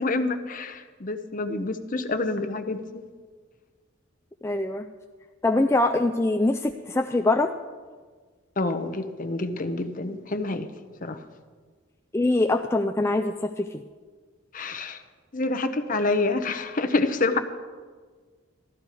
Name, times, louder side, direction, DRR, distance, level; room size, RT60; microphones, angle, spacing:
voice 1, 0.0-3.0 8.6-10.7 11.0-11.2 14.5-15.0 15.3-17.4, left 3 dB, 40° left, 8 dB, 0.8 m, -27 dB
voice 2, 4.4-4.9 5.4-7.5 12.1-13.8, left 2 dB, 15° left, 4 dB, 0.3 m, -23 dB
14.0 x 12.0 x 4.8 m, 1.5 s
head